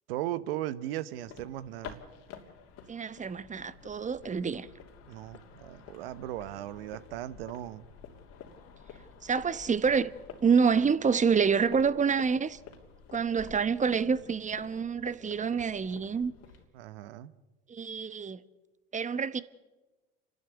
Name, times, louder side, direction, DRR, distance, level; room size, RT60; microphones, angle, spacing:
voice 1, 0.1-2.0 5.1-7.9 16.7-17.3, right 13 dB, 75° right, 1.0 m, -37 dB
sound 1, 1.1-16.7, left 6 dB, 60° left, 2.9 m, -50 dB
voice 2, 2.9-4.7 9.2-10.1 10.4-12.6 13.1-16.3 17.7-18.4 18.9-19.4, right 6 dB, 25° right, 1.0 m, -27 dB
28.5 x 12.0 x 8.3 m
hypercardioid pair, 75°, 29 cm